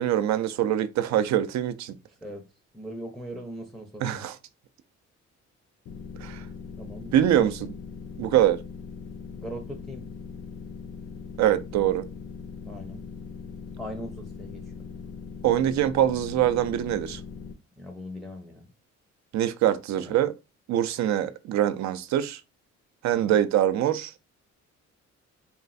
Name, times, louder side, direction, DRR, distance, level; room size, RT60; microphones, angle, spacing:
voice 1, 0.0-1.9 4.0-4.3 6.2-6.4 7.1-7.5 8.2-8.6 11.4-12.1 15.4-17.2 19.3-20.3 20.7-22.4 23.0-24.1, right 11 dB, 65° right, 0.4 m, -24 dB
voice 2, 2.1-2.5 2.7-4.3 6.8-7.7 9.3-10.1 12.6-13.0 13.8-14.7 17.8-18.7 19.9-20.1 23.1-23.4, equal, ahead, 0.5 m, -40 dB
sound 1, 5.9-17.5, left 5 dB, 50° left, 0.5 m, -40 dB
3.0 x 2.4 x 2.5 m
cardioid pair, 90°, 30 cm